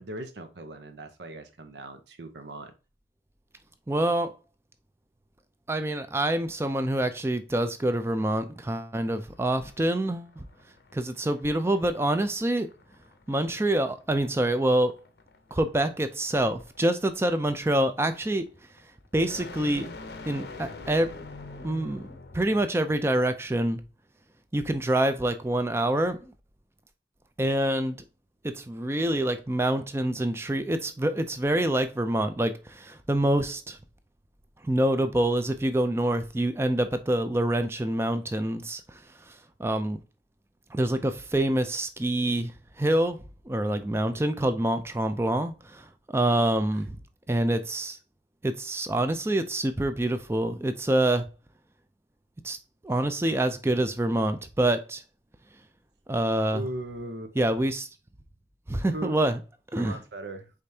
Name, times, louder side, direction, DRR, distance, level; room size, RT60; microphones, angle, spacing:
voice 1, 0.0-2.7 44.1-44.3 56.5-57.3 58.9-59.2 59.8-60.5, right 1 dB, 80° right, 0.8 m, -38 dB
voice 2, 3.9-4.3 5.7-10.5 10.9-12.7 13.3-15.0 15.5-18.4 19.1-19.9 20.3-21.2 21.5-22.1 22.3-23.8 24.5-26.3 27.4-28.0 28.4-33.8 34.6-38.8 39.6-40.0 40.7-42.5 42.8-43.2 43.5-45.8 46.1-46.9 47.3-48.0 48.4-51.3 52.4-52.6 52.8-55.0 56.1-56.7 57.4-57.9 58.7-59.4 59.7-60.0, right 1 dB, 15° right, 0.4 m, -26 dB
sound 1, 9.3-22.8, left 3 dB, 65° left, 0.6 m, -46 dB
5.0 x 3.4 x 2.7 m
head